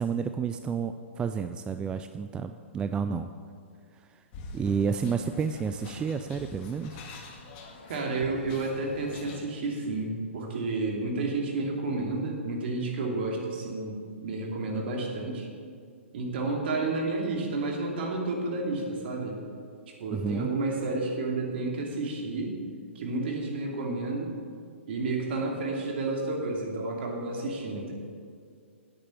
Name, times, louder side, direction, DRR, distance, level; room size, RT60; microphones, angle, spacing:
voice 1, 0.0-3.3 3.9-4.2 4.5-7.0 20.1-20.5, right 6 dB, 15° right, 8 dB, 0.3 m, -30 dB
sound 1, 4.3-9.4, left 2 dB, 40° left, 1.7 m, -45 dB
voice 2, 7.9-15.5 16.1-19.4 20.0-22.6 22.9-24.3 24.9-27.9, right 3 dB, 55° right, 0 dB, 2.7 m, -31 dB
10.0 x 8.9 x 7.0 m, 2.2 s
hypercardioid pair, 130°, 7 cm